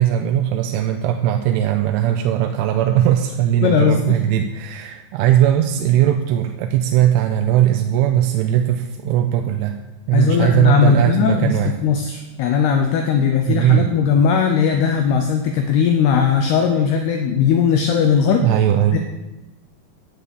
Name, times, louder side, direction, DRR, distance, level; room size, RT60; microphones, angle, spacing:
voice 1, 0.0-9.8 10.1-11.7 13.5-13.9 18.4-19.0, right 11 dB, 85° right, 5 dB, 3.1 m, -18 dB
voice 2, 3.6-4.2 10.1-18.5 18.9-19.0, left 7 dB, 90° left, 5 dB, 2.3 m, -18 dB
10.5 x 6.5 x 8.2 m, 1.0 s
omnidirectional pair, 5.6 m